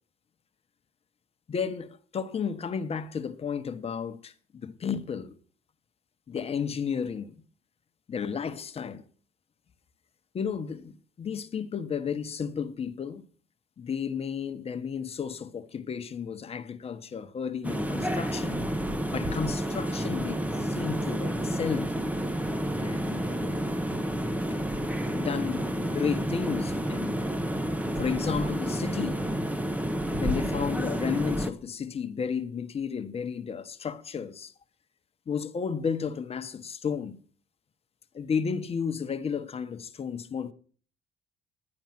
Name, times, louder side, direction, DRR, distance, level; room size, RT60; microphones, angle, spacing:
voice 1, 1.5-5.3 6.3-7.3 8.1-9.0 10.3-13.2 13.8-18.6 19.1-21.9 22.8-23.5 25.1-27.2 28.0-29.3 30.2-34.5 35.3-37.2 38.1-40.5, left 6 dB, 35° left, 1.2 m, -33 dB
sound 1, 17.6-31.5, equal, 10° right, 1.1 m, -30 dB
11.0 x 9.9 x 5.9 m
cardioid pair, 110°, 17 cm